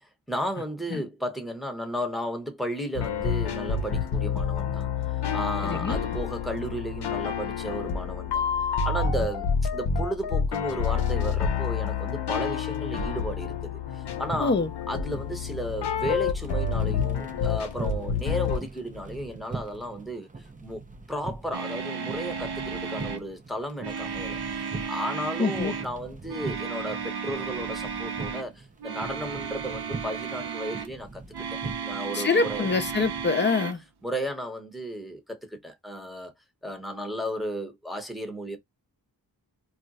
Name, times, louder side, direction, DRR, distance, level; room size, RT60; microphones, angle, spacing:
voice 1, 0.3-4.9 5.1-8.4 8.8-14.6 14.9-20.3 20.6-20.8 21.1-31.2 31.5-32.6 34.0-36.3 36.6-38.6, equal, ahead, 0.9 m, -34 dB
sound 1, 2.9-18.6, left 6 dB, 80° left, 0.7 m, -28 dB
voice 2, 5.6-6.0 14.4-14.7 25.4-25.7 32.1-33.8, left 4 dB, 30° left, 0.6 m, -25 dB
sound 2, 14.2-33.3, right 3 dB, 20° right, 0.5 m, -42 dB
sound 3, 21.5-23.3 23.8-25.9 26.3-28.5 28.8-30.9 31.3-33.7, right 6 dB, 70° right, 0.6 m, -34 dB
2.4 x 2.1 x 3.9 m
wide cardioid pair, 85°, 39 cm